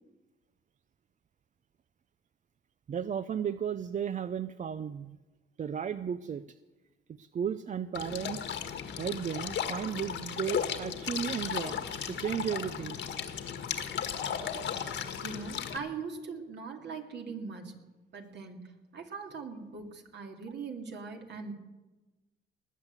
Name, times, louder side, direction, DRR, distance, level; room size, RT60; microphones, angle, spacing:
voice 1, 2.9-5.2 5.6-6.4 7.2-8.6 9.0-11.8 12.1-13.0 15.0-15.1, right 8 dB, 40° right, 13 dB, 0.5 m, -34 dB
sound 1, 7.9-15.8, left 8 dB, 70° left, 1.7 m, -35 dB
voice 2, 15.2-17.8 18.1-21.5, right 5 dB, 60° right, 3 dB, 2.4 m, -41 dB
19.5 x 8.1 x 8.1 m, 1.2 s
cardioid pair, 90°, 20 cm